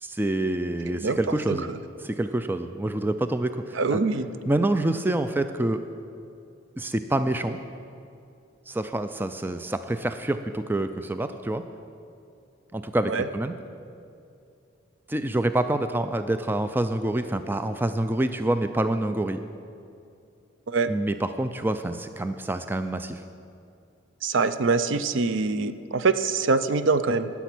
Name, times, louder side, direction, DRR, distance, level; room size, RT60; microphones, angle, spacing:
voice 1, 0.0-1.7 2.0-4.0 4.5-5.8 6.8-7.6 8.7-11.6 12.7-13.5 15.1-19.4 20.9-23.2, right 1 dB, 10° right, 9 dB, 0.3 m, -27 dB
voice 2, 0.9-1.2 1.5-1.8 3.7-4.3 13.0-13.3 20.7-20.9 24.2-27.3, right 4 dB, 70° right, 12 dB, 0.5 m, -24 dB
18.0 x 7.1 x 6.0 m, 2.5 s
head